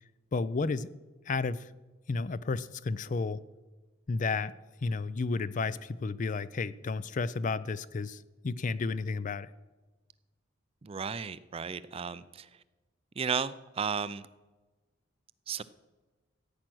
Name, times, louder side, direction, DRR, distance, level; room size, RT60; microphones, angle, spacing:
voice 1, 0.3-0.9 1.3-1.7 2.1-3.4 4.1-4.5 4.8-9.5, left 4 dB, 40° left, 17 dB, 0.4 m, -32 dB
voice 2, 10.8-12.5 13.2-14.2 15.5-15.6, right 6 dB, 30° right, 16 dB, 0.4 m, -34 dB
15.0 x 8.9 x 6.1 m, 1.2 s
head